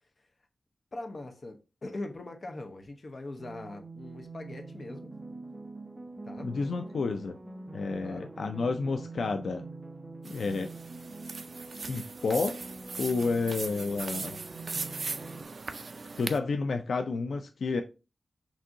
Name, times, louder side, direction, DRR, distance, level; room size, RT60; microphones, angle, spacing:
voice 1, 0.9-5.1 6.2-6.5 8.0-8.3, left 2 dB, 50° left, 0.8 m, -41 dB
sound 1, 3.4-15.4, right 3 dB, 25° right, 0.7 m, -44 dB
voice 2, 6.4-7.4 7.7-9.6 10.2-10.7 11.9-12.6 13.0-14.4 16.2-17.8, left 4 dB, 85° left, 0.4 m, -30 dB
sound 2, 10.3-16.4, right 4 dB, 55° right, 0.4 m, -39 dB
6.1 x 2.7 x 2.6 m
wide cardioid pair, 115°, 0 cm